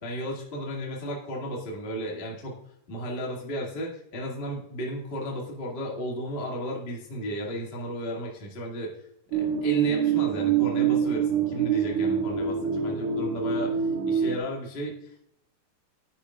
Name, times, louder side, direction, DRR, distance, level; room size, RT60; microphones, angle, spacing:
voice 1, 0.0-2.6 2.9-8.9 9.3-15.3, equal, 25° left, -2 dB, 1.5 m, -34 dB
sound 1, 9.3-14.4, right 7 dB, 90° right, 3.1 m, -25 dB
10.0 x 9.0 x 2.5 m, 0.74 s
omnidirectional pair, 4.5 m